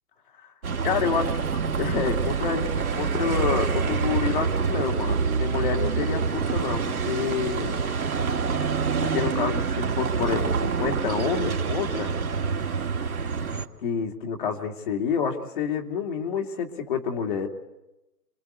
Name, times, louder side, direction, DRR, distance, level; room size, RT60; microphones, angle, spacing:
Bus, 0.6-13.7, right 5 dB, 65° right, 2.2 m, -26 dB
voice 1, 0.8-1.4 1.7-7.8 9.0-12.1 13.8-17.5, left 6 dB, 35° left, 3 dB, 2.7 m, -28 dB
28.0 x 22.0 x 8.2 m, 0.98 s
hypercardioid pair, 160°, 46 cm